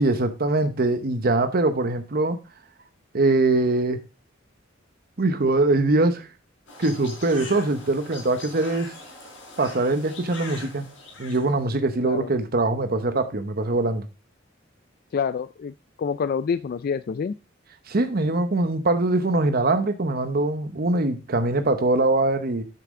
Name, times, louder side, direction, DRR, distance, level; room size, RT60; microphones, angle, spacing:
voice 1, 0.0-2.4 3.1-4.0 5.2-6.3 6.8-8.9 9.6-10.8 11.2-14.1 17.9-22.6, right 2 dB, 50° right, 0.9 m, -22 dB
sound 1, 6.7-11.5, left 3 dB, 85° left, 3.8 m, -42 dB
voice 2, 15.1-15.7 16.0-17.3, left 6 dB, 50° left, 0.3 m, -27 dB
8.4 x 5.9 x 3.6 m
head